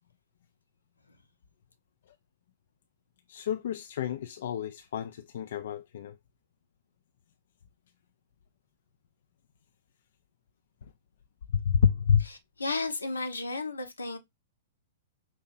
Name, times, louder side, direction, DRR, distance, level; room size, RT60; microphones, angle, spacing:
voice 1, 3.3-6.2 11.5-12.3, left 7 dB, 60° left, 0.3 m, -28 dB
voice 2, 12.6-14.2, left 3 dB, 80° left, 0.9 m, -33 dB
5.4 x 2.8 x 2.5 m
figure-of-eight pair, 110°, 0 cm